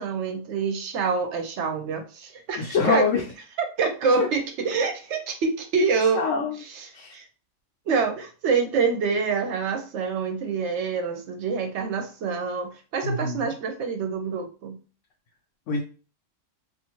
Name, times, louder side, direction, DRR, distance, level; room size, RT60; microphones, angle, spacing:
voice 1, 0.0-3.1 3.8-6.2 6.7-7.2 7.9-14.8, right 5 dB, 70° right, 5 dB, 0.9 m, -26 dB
voice 2, 2.6-3.2 4.2-4.3 6.1-6.6 6.9-7.2 13.0-13.5 15.7-15.8, left 4 dB, 75° left, -1 dB, 0.9 m, -25 dB
2.5 x 2.5 x 2.9 m, 0.36 s
omnidirectional pair, 1.3 m